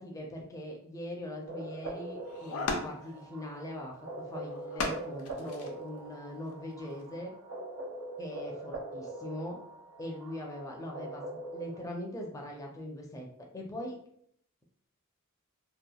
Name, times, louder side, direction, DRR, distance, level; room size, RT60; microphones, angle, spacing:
voice 1, 0.0-7.3 8.2-9.6 10.0-13.3 13.5-13.9, left 1 dB, 15° left, 0 dB, 0.4 m, -41 dB
sound 1, 1.5-11.8, right 2 dB, 75° right, 0.5 m, -43 dB
sound 2, 1.8-1.9 2.2-3.1 4.4-5.7 6.5-6.6 7.0-7.1, left 3 dB, 80° left, 0.5 m, -36 dB
2.8 x 2.2 x 2.2 m, 0.66 s
head